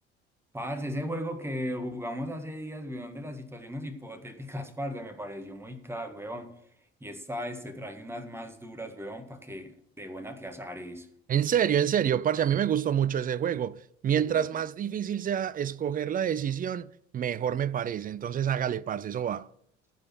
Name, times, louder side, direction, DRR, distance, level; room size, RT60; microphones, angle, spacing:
voice 1, 0.5-6.5 7.0-11.1 14.2-14.4, equal, 5° right, 1.7 m, -37 dB
voice 2, 11.3-19.5, right 9 dB, 25° right, 0.5 m, -28 dB
15.0 x 5.4 x 6.2 m
figure-of-eight pair, 55°, 33 cm